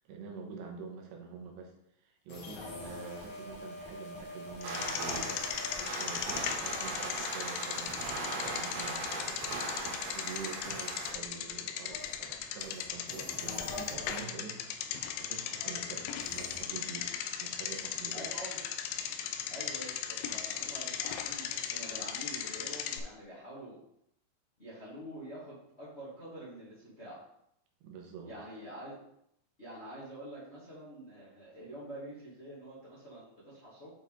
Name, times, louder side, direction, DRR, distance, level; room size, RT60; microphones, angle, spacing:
voice 1, 0.1-1.7 2.0-5.3 6.0-17.1 17.4-18.3 27.8-28.4, right 5 dB, 85° right, 1 dB, 3.4 m, -46 dB
sound 1, 2.3-5.8 6.2-7.1 7.8-11.5 11.9-14.2 16.2-16.6, left 1 dB, 55° left, 1.9 m, -46 dB
Bicycle, 4.6-23.0, left 9 dB, 80° left, 2.2 m, -38 dB
sound 2, 4.6-11.1, right 2 dB, 70° right, 4.2 m, -38 dB
voice 2, 18.1-18.6 19.5-23.8 24.6-27.2 28.2-28.9 29.6-33.9, right 1 dB, 25° left, -9 dB, 1.4 m, -46 dB
8.7 x 4.7 x 3.6 m, 0.75 s
omnidirectional pair, 5.0 m